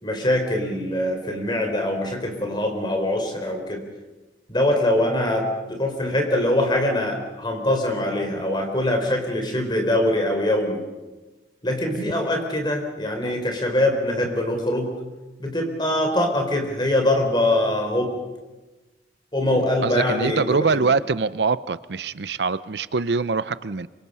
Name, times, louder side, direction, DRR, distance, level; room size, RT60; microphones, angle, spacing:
voice 1, 0.0-3.8 4.5-10.8 11.6-15.0 15.4-18.2 19.3-20.5 20.7-20.8, left 1 dB, 25° left, 3 dB, 4.2 m, -23 dB
voice 2, 19.8-23.9, right 4 dB, 75° right, 15 dB, 0.7 m, -24 dB
27.0 x 24.5 x 5.6 m, 1.2 s
head